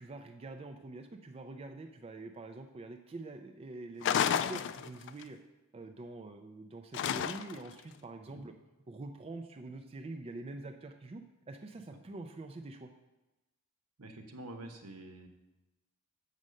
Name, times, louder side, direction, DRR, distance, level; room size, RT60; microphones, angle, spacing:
voice 1, 0.0-5.4 5.7-8.5 8.9-12.9, right 2 dB, 25° right, 5 dB, 0.4 m, -45 dB
sound 1, 4.0-5.2 6.9-7.7, left 8 dB, 55° left, 0.3 m, -31 dB
voice 2, 14.0-15.3, right 1 dB, 75° right, 5 dB, 1.0 m, -47 dB
7.4 x 5.4 x 6.3 m, 1.0 s
head